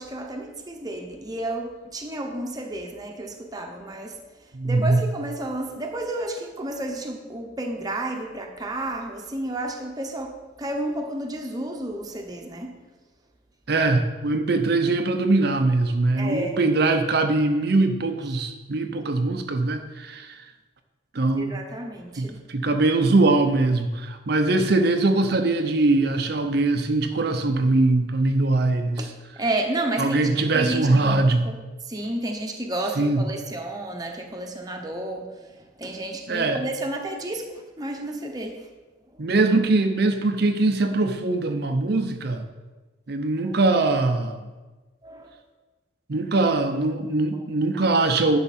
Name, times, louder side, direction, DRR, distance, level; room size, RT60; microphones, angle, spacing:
voice 1, 0.0-4.1 4.6-10.3 10.6-12.7 16.2-16.6 21.4-22.4 29.0-29.1 29.4-30.2 30.5-31.2 31.5-31.6 31.9-35.3 35.8-37.5 37.8-38.6 45.0-45.3, right 1 dB, 20° right, 2 dB, 0.9 m, -31 dB
voice 2, 4.5-5.1 13.7-20.4 21.1-21.6 22.2-29.1 30.0-31.4 33.0-33.3 36.3-36.6 39.2-42.5 43.1-44.5 46.1-48.4, right 2 dB, 55° right, 6 dB, 0.6 m, -22 dB
10.5 x 5.8 x 4.3 m, 1.2 s
head